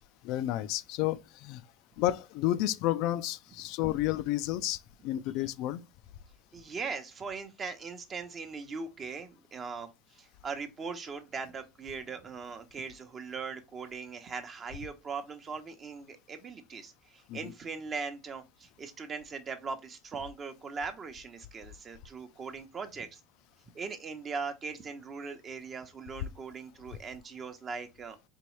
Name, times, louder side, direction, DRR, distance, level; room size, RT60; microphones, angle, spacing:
voice 1, 0.2-1.6 2.0-5.8 17.3-17.5, left 14 dB, 60° left, 0.4 m, -31 dB
voice 2, 6.5-23.2 23.7-28.2, right 5 dB, 30° right, 0.9 m, -40 dB
4.5 x 3.1 x 3.1 m
supercardioid pair, 125°, 0 cm